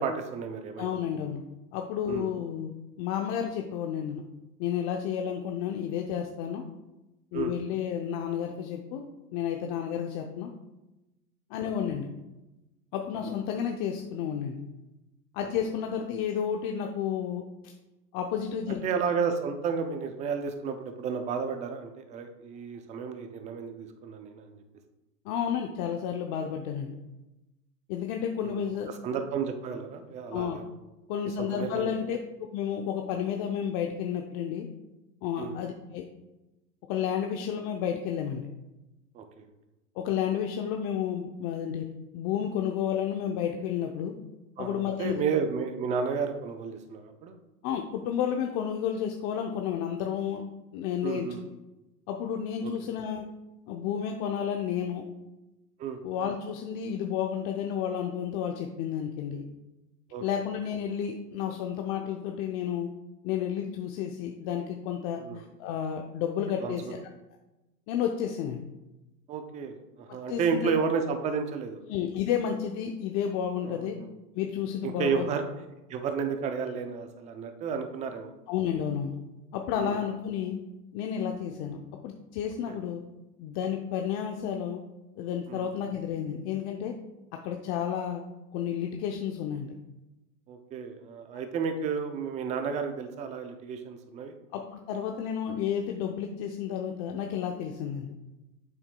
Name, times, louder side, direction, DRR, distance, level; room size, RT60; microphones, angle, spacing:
voice 1, 0.0-0.9 2.1-2.3 7.3-7.5 11.6-11.7 15.4-15.5 18.8-24.6 28.4-28.6 28.9-30.6 31.4-31.9 35.4-35.6 39.1-39.4 44.6-47.3 51.0-51.4 52.6-52.7 55.8-56.0 60.1-60.2 65.2-65.4 66.6-66.9 69.3-71.8 73.6-74.1 74.8-75.5 75.9-78.3 79.7-79.9 82.7-82.8 85.5-85.7 90.5-94.4, right 6 dB, 15° right, 7 dB, 0.4 m, -32 dB
voice 2, 0.8-1.4 1.7-4.2 4.6-6.6 7.3-9.1 9.3-10.5 11.5-12.1 12.9-14.6 15.3-17.7 18.1-18.8 25.2-27.0 27.9-28.9 30.3-30.6 31.1-34.7 35.2-36.1 36.9-38.5 40.0-41.9 42.1-44.1 44.6-45.2 47.6-50.5 50.7-51.3 52.1-53.2 53.7-55.0 56.0-59.4 60.2-62.9 63.2-67.0 67.9-68.6 70.3-70.7 71.9-74.0 74.3-75.3 78.5-79.2 79.5-80.6 80.9-83.0 83.4-84.8 85.2-86.9 87.4-88.2 88.5-89.7 94.5-98.1, left 8 dB, 40° left, 3 dB, 0.7 m, -31 dB
8.1 x 7.1 x 2.2 m, 1.0 s
hypercardioid pair, 115°, 50 cm